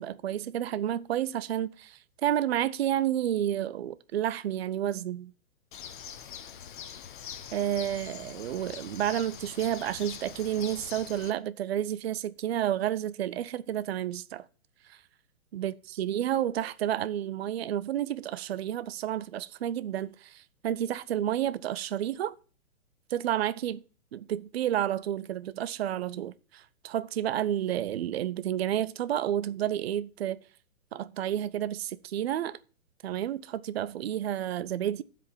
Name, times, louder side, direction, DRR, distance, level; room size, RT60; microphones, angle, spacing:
voice 1, 0.0-5.3 7.5-14.5 14.9-15.0 15.5-22.3 23.1-23.8 24.1-30.4 30.9-32.6 33.0-35.0, right 11 dB, 50° right, 0.5 m, -30 dB
Bird, 5.7-11.3, left 8 dB, 35° left, 0.8 m, -43 dB
12.5 x 5.1 x 5.6 m
hypercardioid pair, 160°, 42 cm